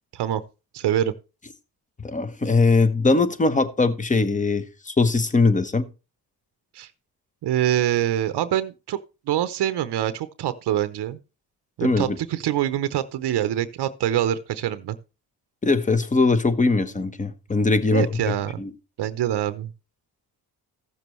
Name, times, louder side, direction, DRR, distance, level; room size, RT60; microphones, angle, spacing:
voice 1, 0.7-1.1 6.7-6.9 7.4-9.0 9.3-11.2 11.8-15.0 17.9-18.6 19.0-19.7, right 11 dB, 80° right, 0.7 m, -25 dB
voice 2, 2.0-5.9 11.8-12.2 15.6-18.1 18.6-18.7, left 3 dB, 20° left, 0.9 m, -21 dB
15.0 x 6.9 x 3.1 m
cardioid pair, 95°, 40 cm